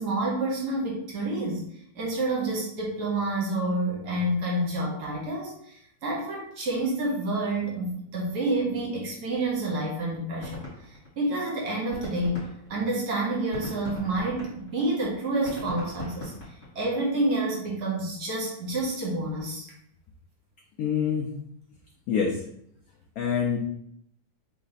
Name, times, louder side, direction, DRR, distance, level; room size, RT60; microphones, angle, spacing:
voice 1, 0.0-1.6 1.9-10.6 10.9-16.3 16.7-19.7, right 2 dB, 60° right, -3 dB, 1.5 m, -28 dB
sound 1, 9.4-9.5 9.7-9.9 10.2-11.5 11.8-17.0, left 2 dB, 40° left, 2.1 m, -40 dB
voice 2, 20.8-21.3 22.1-22.4 23.2-23.6, left 7 dB, 75° left, 1 dB, 0.8 m, -25 dB
3.4 x 3.0 x 4.0 m, 0.70 s
omnidirectional pair, 2.1 m